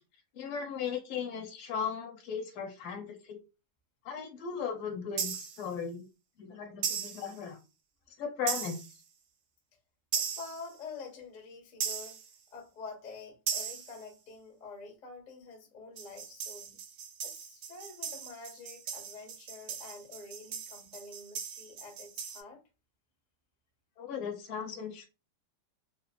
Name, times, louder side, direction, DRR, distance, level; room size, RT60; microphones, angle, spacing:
voice 1, 0.3-3.4 4.0-6.1 6.4-7.6 8.2-8.8 24.0-25.1, left 7 dB, 75° left, 1.6 m, -37 dB
sound 1, 5.2-5.6 6.8-7.3 8.5-9.0 10.1-10.7 11.8-12.3 13.5-14.0 16.0-22.4, right 7 dB, 70° right, 1.1 m, -38 dB
voice 2, 10.1-12.2 12.5-16.8 17.2-22.6, left 4 dB, 55° left, 0.5 m, -47 dB
3.9 x 2.1 x 2.3 m
omnidirectional pair, 2.4 m